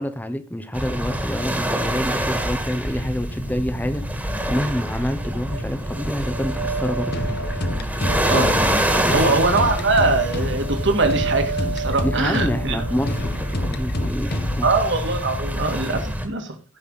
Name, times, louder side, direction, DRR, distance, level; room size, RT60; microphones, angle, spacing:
voice 1, 0.0-4.0 4.5-7.2 9.0-9.4 12.0-14.7, equal, 10° left, 9 dB, 1.0 m, -27 dB
sound 1, 0.7-16.3, equal, 5° right, 2.0 m, -26 dB
sound 2, 5.2-14.3, right 5 dB, 40° right, 0.7 m, -33 dB
sound 3, 7.1-14.8, left 1 dB, 50° left, 1.2 m, -28 dB
voice 2, 9.0-12.9 14.6-16.5, right 3 dB, 60° right, 5 dB, 2.2 m, -22 dB
16.0 x 5.7 x 4.1 m, 0.32 s
head